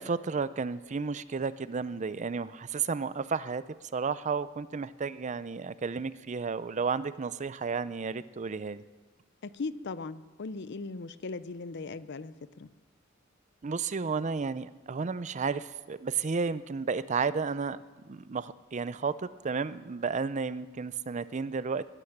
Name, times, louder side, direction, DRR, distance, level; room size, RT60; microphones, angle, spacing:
voice 1, 0.0-3.6 3.9-8.8 13.6-17.8 18.1-21.8, right 5 dB, 35° right, 16 dB, 0.5 m, -32 dB
voice 2, 9.4-12.7, left 3 dB, 60° left, 16 dB, 0.6 m, -38 dB
20.0 x 9.9 x 7.2 m, 1.3 s
head